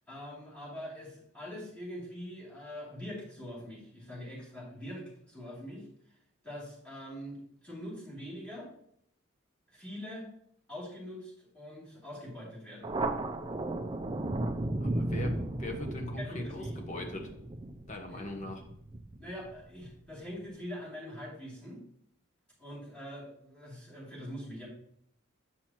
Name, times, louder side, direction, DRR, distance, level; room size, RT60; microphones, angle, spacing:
voice 1, 0.1-5.9 6.4-8.7 9.7-10.3 10.7-12.9 16.2-17.1 18.1-18.3 19.2-21.8 22.6-24.7, equal, 5° left, -7 dB, 2.7 m, -43 dB
Thunder, 12.8-19.9, right 2 dB, 25° right, 0.4 m, -35 dB
voice 2, 14.8-17.3 17.9-18.6, left 1 dB, 35° left, 3 dB, 0.9 m, -39 dB
7.2 x 6.3 x 2.9 m, 0.70 s
head